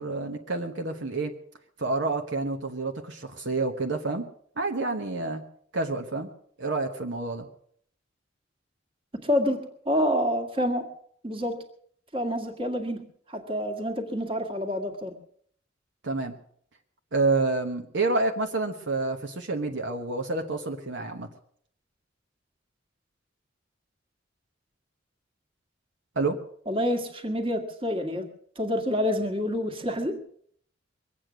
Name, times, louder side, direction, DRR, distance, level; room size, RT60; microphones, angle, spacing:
voice 1, 0.0-1.3 1.8-4.3 4.6-5.4 5.7-6.3 6.6-7.5 16.0-16.3 17.1-21.3 26.1-26.4, right 3 dB, 65° right, 3 dB, 1.2 m, -28 dB
voice 2, 9.1-10.9 11.2-11.6 12.1-15.2 26.7-28.3 28.6-30.2, equal, 30° right, 5 dB, 1.9 m, -28 dB
22.5 x 8.8 x 6.2 m, 0.62 s
head